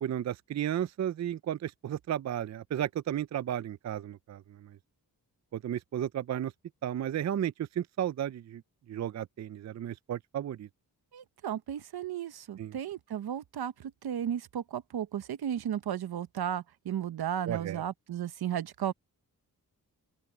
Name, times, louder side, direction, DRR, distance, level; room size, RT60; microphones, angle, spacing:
voice 1, 0.0-4.8 5.5-6.5 6.8-8.6 8.9-10.7 12.6-12.7 17.5-17.8, right 10 dB, 50° right, 0.4 m, -33 dB
voice 2, 11.1-18.9, right 10 dB, 80° right, 0.9 m, -34 dB
open air
wide cardioid pair, 110°, 37 cm